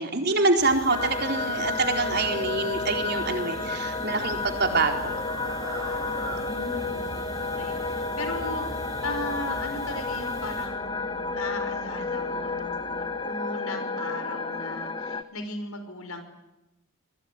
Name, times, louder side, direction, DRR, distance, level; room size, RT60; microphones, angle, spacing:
voice 1, 0.0-5.2, right 3 dB, 50° right, 4 dB, 4.2 m, -25 dB
sound 1, 0.6-10.7, right 1 dB, 15° right, 7.6 m, -41 dB
sound 2, 0.9-15.2, left 3 dB, 20° left, 1.2 m, -31 dB
sound 3, 4.2-13.1, right 2 dB, 90° right, 5.8 m, -50 dB
voice 2, 6.3-16.2, left 2 dB, 80° left, 8 dB, 6.0 m, -37 dB
27.5 x 21.5 x 9.9 m, 0.93 s
head